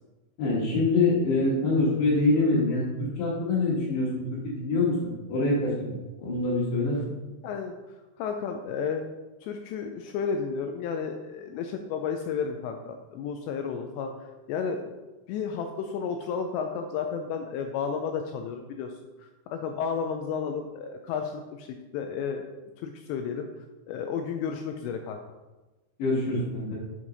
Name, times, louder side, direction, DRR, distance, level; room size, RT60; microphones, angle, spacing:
voice 1, 0.4-5.7 6.2-7.0 26.0-26.8, left 2 dB, 70° left, -8 dB, 3.5 m, -25 dB
voice 2, 7.4-9.0 9.4-14.8 15.3-18.9 19.2-22.4 22.8-25.2, left 6 dB, 85° left, 5 dB, 2.5 m, -32 dB
7.4 x 6.1 x 4.0 m, 1.1 s
omnidirectional pair, 5.5 m